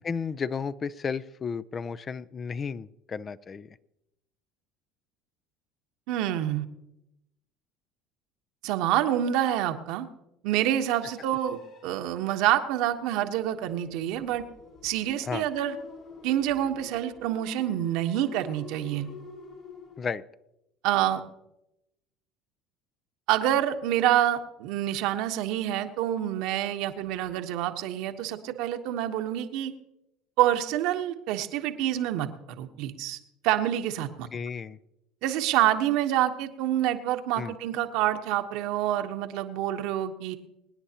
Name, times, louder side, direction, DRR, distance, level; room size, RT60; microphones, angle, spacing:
voice 1, 0.0-3.8 15.3-15.5 20.0-20.2 34.3-34.8 37.4-37.5, left 5 dB, 35° left, 15 dB, 0.5 m, -33 dB
voice 2, 6.1-6.6 8.6-10.1 10.4-14.4 14.8-15.8 16.2-19.1 20.8-21.2 23.3-29.7 30.4-32.3 32.6-34.3 35.2-40.4, right 12 dB, 65° right, 7 dB, 1.1 m, -27 dB
sound 1, 10.6-20.0, left 5 dB, 55° left, 4.1 m, -49 dB
25.0 x 9.9 x 2.9 m, 0.86 s
hypercardioid pair, 75°, 0 cm